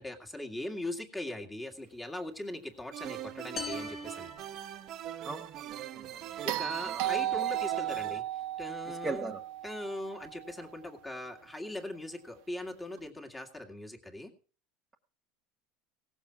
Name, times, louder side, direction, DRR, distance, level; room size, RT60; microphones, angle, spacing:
voice 1, 0.0-4.3 6.4-8.2 8.6-9.3 9.6-14.3, left 1 dB, 10° left, 2 dB, 2.0 m, -40 dB
sound 1, 2.9-8.2, right 11 dB, 40° right, 0.9 m, -42 dB
sound 2, 3.6-5.3, left 6 dB, 30° left, 1.7 m, -43 dB
voice 2, 5.2-6.2 6.8-7.1 8.9-9.4, right 3 dB, 15° right, 2 dB, 1.1 m, -39 dB
sound 3, 6.5-10.7 13.0-13.1, right 13 dB, 65° right, 1.0 m, -35 dB
17.5 x 7.2 x 5.9 m, 0.39 s
supercardioid pair, 155°, 0 cm